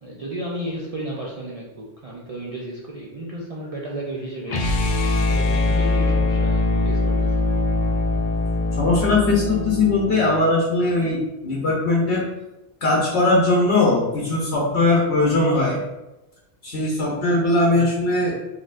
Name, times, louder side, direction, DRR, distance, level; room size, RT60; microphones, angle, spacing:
voice 1, 0.0-4.6 5.3-7.5 17.7-17.9, right 1 dB, 55° right, -4 dB, 0.4 m, -33 dB
sound 1, 4.5-10.5, left 2 dB, 85° left, 0.3 m, -22 dB
voice 2, 8.8-12.2 12.8-15.8 16.6-18.4, left 2 dB, 65° left, -3 dB, 1.0 m, -20 dB
4.1 x 3.1 x 2.5 m, 0.99 s
omnidirectional pair, 1.2 m